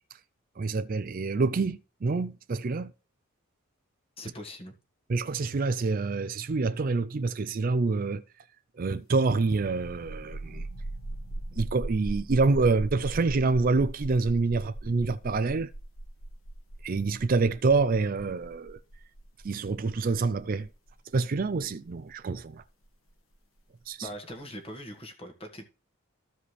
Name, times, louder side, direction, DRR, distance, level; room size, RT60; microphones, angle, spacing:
voice 1, 0.6-2.9 5.1-8.2 8.8-10.6 11.5-15.7 16.8-18.8 19.4-20.7 21.1-22.6 23.9-24.1, right 3 dB, 40° right, 0.4 m, -27 dB
voice 2, 4.2-4.8 24.0-25.6, equal, 25° left, 1.7 m, -41 dB
sound 1, 9.5-22.9, right 1 dB, 75° left, 1.8 m, -39 dB
14.5 x 5.0 x 3.3 m
head